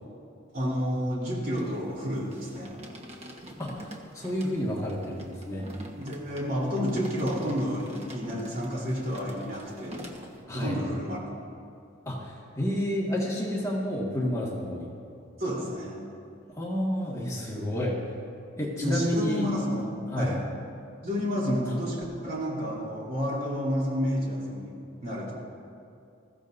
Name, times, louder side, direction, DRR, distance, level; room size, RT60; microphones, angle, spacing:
voice 1, 0.5-2.7 6.0-10.1 10.5-11.2 15.4-16.1 18.8-19.8 20.2-20.5 21.0-25.4, equal, 50° right, -4 dB, 3.6 m, -30 dB
sound 1, 1.6-10.4, equal, 35° right, 1.3 m, -45 dB
voice 2, 3.6-5.7 10.5-10.8 12.1-14.9 16.5-18.0 18.6-19.5 20.1-20.3, equal, 15° left, -4 dB, 1.9 m, -30 dB
21.0 x 15.0 x 2.7 m, 2.5 s
head